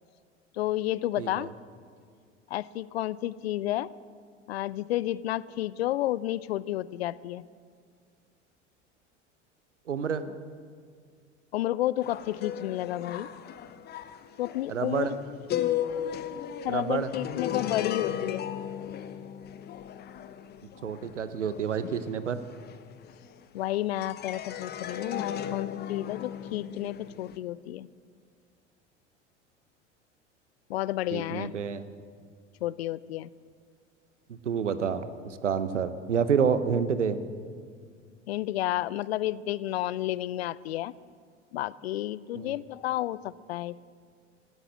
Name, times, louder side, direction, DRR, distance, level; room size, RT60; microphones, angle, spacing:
voice 1, 0.5-1.5 2.5-3.9 4.5-7.4 11.5-13.3 14.4-15.2 15.6-15.7 16.1-16.2 16.6-18.5 23.5-27.9 30.7-31.5 32.6-33.3 38.3-40.9 41.5-43.8, left 14 dB, 60° left, 21 dB, 0.5 m, -31 dB
voice 2, 1.2-1.5 9.9-10.2 14.7-15.1 16.7-17.1 20.8-22.4 31.1-31.8 34.3-37.2 42.3-42.5, right 6 dB, 75° right, 12 dB, 0.9 m, -28 dB
sound 1, 12.0-23.6 24.0-27.4, left 10 dB, 25° left, 0.8 m, -36 dB
16.0 x 13.0 x 6.2 m, 2.1 s
figure-of-eight pair, 75°, 36 cm